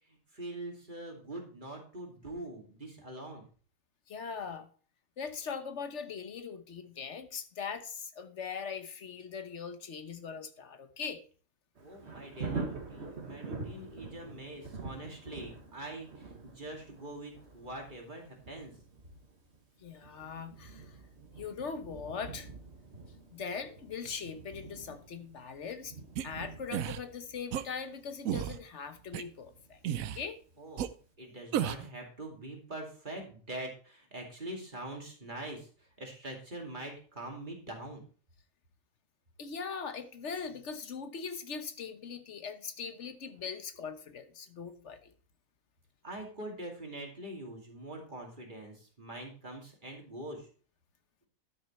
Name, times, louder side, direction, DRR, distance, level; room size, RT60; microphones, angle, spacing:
voice 1, 0.1-3.4 11.8-18.7 30.6-30.9 31.2-38.0 46.0-50.5, right 1 dB, 35° right, 1 dB, 2.7 m, -44 dB
voice 2, 4.1-4.7 5.2-11.2 19.8-21.0 21.4-22.5 23.3-26.0 26.2-29.8 30.1-30.4 39.4-45.1, left 6 dB, 60° left, 9 dB, 1.4 m, -40 dB
Thunder, 11.7-30.5 31.0-31.1, right 4 dB, 55° right, 2.0 m, -46 dB
sound 1, 26.2-26.3 26.7-27.0 27.5-27.6 28.2-28.6 29.1-29.2 29.8-30.2 30.8-30.9 31.5-31.9, right 10 dB, 85° right, 1.1 m, -32 dB
12.5 x 6.4 x 4.3 m, 0.41 s
omnidirectional pair, 1.4 m